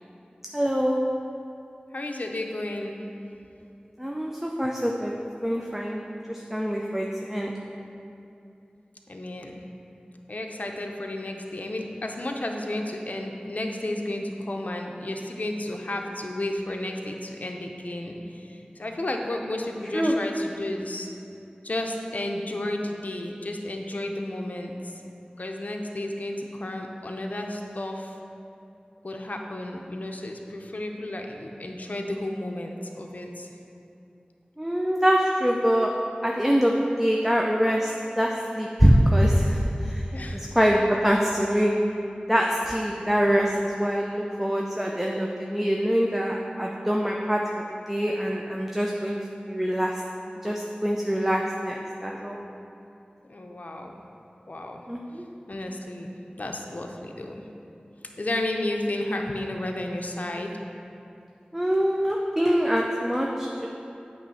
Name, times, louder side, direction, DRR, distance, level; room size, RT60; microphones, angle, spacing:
voice 1, 0.5-1.0 4.0-5.1 5.4-6.0 6.3-7.5 19.9-20.1 34.6-35.9 36.2-40.1 40.3-41.7 42.3-49.2 49.5-49.9 50.4-52.4 54.9-55.2 61.5-63.7, equal, 10° right, -1 dB, 0.5 m, -24 dB
voice 2, 1.9-3.0 9.1-9.6 10.3-21.1 21.6-24.7 25.4-28.1 29.0-33.5 40.1-40.4 42.9-43.3 53.3-54.0 54.5-54.8 55.5-57.4 58.2-60.5, left 1 dB, 60° left, 2 dB, 0.6 m, -32 dB
8.8 x 3.1 x 5.6 m, 2.7 s
wide cardioid pair, 50°, 3 cm